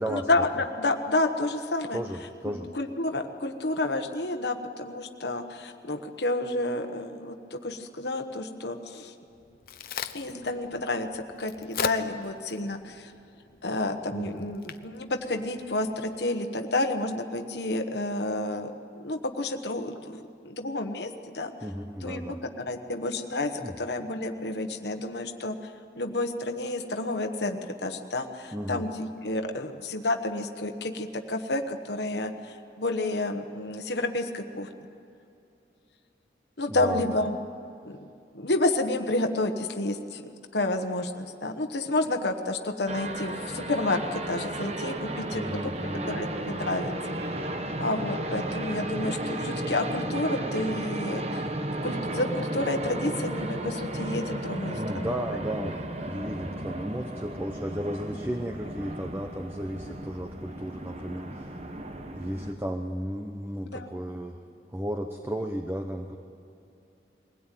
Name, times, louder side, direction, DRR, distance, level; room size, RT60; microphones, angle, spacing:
voice 1, 0.1-2.0 2.4-9.1 10.1-13.1 13.6-21.5 22.0-22.3 22.6-34.7 36.6-37.4 37.8-38.1 38.3-40.2 40.5-45.6 46.1-46.9 47.8-51.5 51.8-55.0 63.7-63.9, left 2 dB, 75° left, 5 dB, 1.2 m, -30 dB
voice 2, 1.9-2.7 14.1-14.5 21.6-22.4 23.6-23.8 28.5-28.8 36.7-37.2 45.3-46.1 54.8-61.6 62.2-64.4 64.7-66.2, equal, 15° right, 4 dB, 0.9 m, -34 dB
Crack, 9.3-16.2, left 6 dB, 55° left, 0.8 m, -40 dB
sound 1, 42.9-62.5, right 1 dB, 35° right, 1.2 m, -34 dB
22.5 x 17.0 x 9.2 m, 2.6 s
head